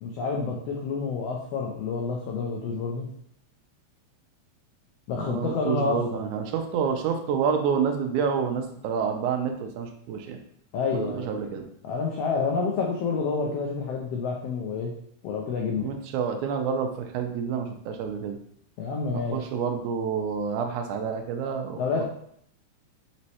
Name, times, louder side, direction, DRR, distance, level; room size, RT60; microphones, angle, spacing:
voice 1, 0.0-3.1 5.1-6.2 10.7-11.3 11.8-14.9 15.2-15.9 18.8-19.4 21.7-22.0, left 4 dB, 90° left, -1 dB, 1.4 m, -28 dB
voice 2, 5.2-10.4 10.9-11.7 15.8-18.4 19.3-22.1, right 6 dB, 85° right, 5 dB, 2.0 m, -28 dB
5.3 x 3.1 x 2.8 m, 0.69 s
omnidirectional pair, 3.5 m